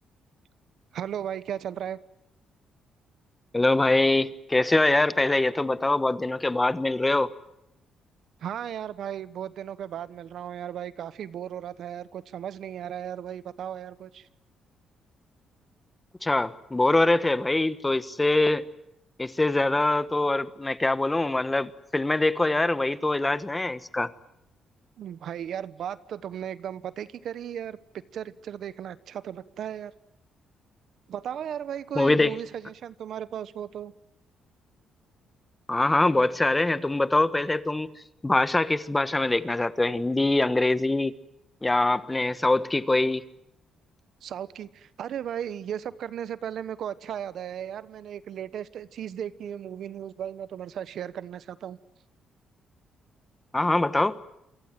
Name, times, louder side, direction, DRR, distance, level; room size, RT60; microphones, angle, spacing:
voice 1, 0.9-2.0 8.4-14.3 25.0-27.8 28.1-29.9 31.1-33.9 44.2-51.8, right 9 dB, 70° right, 16 dB, 1.1 m, -36 dB
voice 2, 3.5-7.3 16.2-18.6 19.2-24.1 32.0-32.4 35.7-37.9 38.2-41.1 41.6-43.2 53.5-54.3, left 2 dB, 15° left, 14 dB, 1.3 m, -23 dB
28.0 x 23.5 x 7.6 m, 0.84 s
cardioid pair, 90°, 0 cm